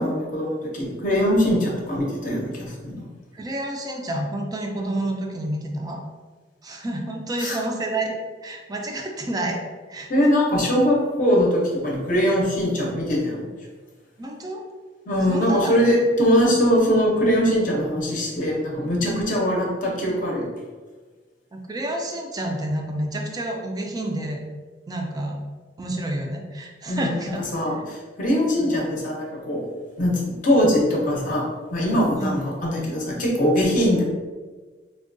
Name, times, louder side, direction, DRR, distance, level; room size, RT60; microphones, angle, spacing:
voice 1, 0.0-3.1 7.4-7.6 10.1-13.5 15.1-20.5 26.9-29.7 30.0-34.0, equal, 45° left, -3 dB, 0.6 m, -22 dB
voice 2, 3.3-6.0 6.6-10.1 14.2-14.6 15.3-16.0 21.5-24.4 24.9-25.4 25.8-27.4 28.5-28.7 32.2-32.4, right 1 dB, 20° right, 2 dB, 0.3 m, -29 dB
3.4 x 2.2 x 2.5 m, 1.4 s
head